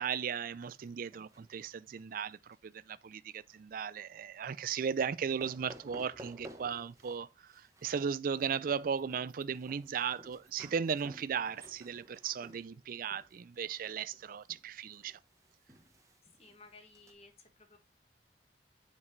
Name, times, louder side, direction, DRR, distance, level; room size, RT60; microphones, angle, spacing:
voice 1, 0.0-15.2, right 7 dB, 50° right, 0.4 m, -36 dB
sound 1, 0.6-2.8 3.1-3.5 4.6-5.1 5.4-7.2 7.5-17.1, right 1 dB, 20° right, 1.1 m, -55 dB
voice 2, 16.4-17.8, left 3 dB, 35° left, 1.5 m, -57 dB
7.3 x 5.3 x 3.2 m
head